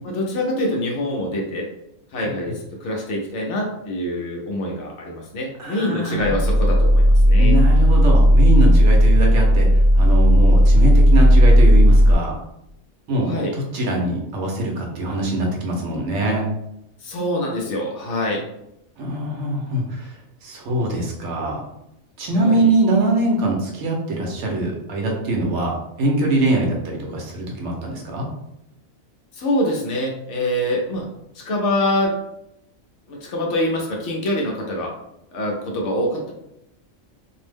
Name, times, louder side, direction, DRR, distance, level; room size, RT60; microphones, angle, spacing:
voice 1, 0.0-1.7 2.1-7.6 13.2-13.6 17.0-18.4 22.3-22.7 29.3-31.1 31.3-32.1 33.1-34.9 35.3-36.3, left 1 dB, 65° left, -1 dB, 0.9 m, -25 dB
voice 2, 5.6-6.3 7.4-9.7 10.0-12.3 13.1-16.4 19.0-20.1 20.4-21.6 22.2-28.3, right 2 dB, 65° right, 0 dB, 0.9 m, -23 dB
sound 1, 6.2-12.1, equal, 30° right, 0.8 m, -13 dB
2.6 x 2.0 x 3.3 m, 0.82 s
omnidirectional pair, 1.4 m